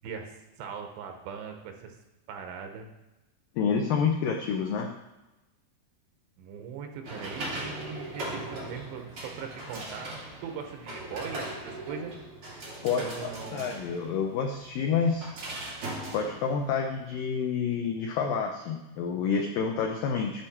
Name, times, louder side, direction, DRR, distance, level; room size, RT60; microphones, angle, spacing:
voice 1, 0.0-2.0 2.3-2.9 6.4-12.1 12.9-13.7, right 6 dB, 85° right, 4 dB, 3.2 m, -40 dB
voice 2, 3.6-4.9 12.8-15.3 16.1-20.4, left 6 dB, 90° left, 2 dB, 1.9 m, -28 dB
sound 1, 7.0-17.1, right 2 dB, 35° right, 2.8 m, -39 dB
8.9 x 7.8 x 4.4 m, 1.0 s
omnidirectional pair, 5.0 m